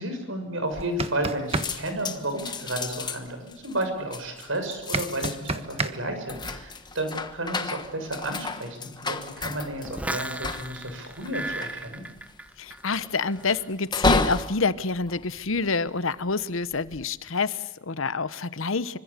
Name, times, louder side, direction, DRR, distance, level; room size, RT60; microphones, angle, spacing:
voice 1, 0.0-12.0, right 1 dB, 70° right, 7 dB, 6.4 m, -32 dB
sound 1, 0.7-1.2 1.5-16.1 16.6-17.0, left 3 dB, 20° left, 1.3 m, -32 dB
sound 2, 0.8-1.7 4.9-5.9, right 3 dB, 30° right, 1.4 m, -27 dB
sound 3, 9.8-12.9 13.2-13.6, right 1 dB, 5° right, 1.0 m, -35 dB
voice 2, 12.6-19.0, left 4 dB, 70° left, 15 dB, 1.0 m, -27 dB
26.0 x 25.5 x 8.3 m, 0.94 s
head